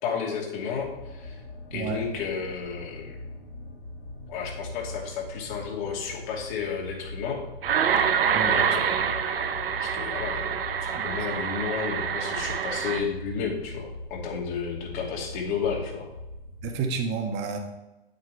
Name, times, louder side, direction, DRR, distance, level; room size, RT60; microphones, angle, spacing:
voice 1, 0.0-1.4 1.7-3.2 4.3-7.4 8.4-8.8 9.8-16.1, left 6 dB, 55° left, -1 dB, 2.8 m, -32 dB
sound 1, 0.7-17.0, left 2 dB, 70° left, 2.8 m, -41 dB
sound 2, 7.6-13.0, right 8 dB, 75° right, 0.9 m, -26 dB
voice 2, 8.3-9.0 11.0-11.4 16.6-17.6, right 5 dB, 35° right, 3 dB, 1.6 m, -31 dB
8.8 x 8.3 x 3.4 m, 1.0 s
hypercardioid pair, 105°, 29 cm